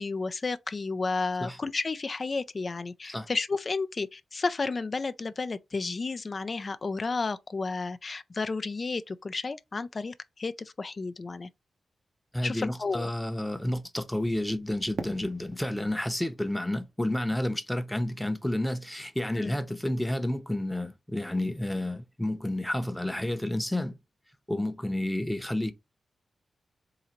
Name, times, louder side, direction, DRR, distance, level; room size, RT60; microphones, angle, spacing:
voice 1, 0.0-11.5 12.4-13.1 19.3-19.6, left 3 dB, 45° left, 0.5 m, -32 dB
voice 2, 12.3-24.0 24.5-25.7, left 1 dB, 5° left, 0.8 m, -30 dB
Fireworks, 14.9-18.0, right 5 dB, 75° right, 0.8 m, -43 dB
3.8 x 2.7 x 4.4 m
cardioid pair, 50°, 0 cm